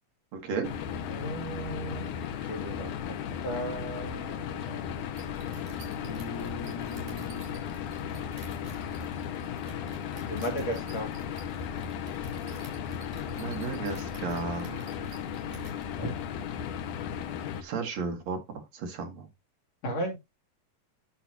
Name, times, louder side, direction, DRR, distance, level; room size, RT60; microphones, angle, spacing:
voice 1, 0.3-0.7 13.3-14.9 17.6-19.3, right 4 dB, 60° right, 4 dB, 2.7 m, -34 dB
sound 1, 0.6-17.6, left 8 dB, 75° left, 2.3 m, -36 dB
voice 2, 0.9-2.1 2.5-3.1 3.4-5.3 5.8-7.5 9.7-11.2 16.0-16.1 19.8-20.2, equal, 50° left, -1 dB, 4.0 m, -37 dB
sound 2, 5.1-15.8, right 3 dB, 75° right, 4.6 m, -51 dB
10.5 x 6.8 x 2.9 m, 0.22 s
omnidirectional pair, 3.8 m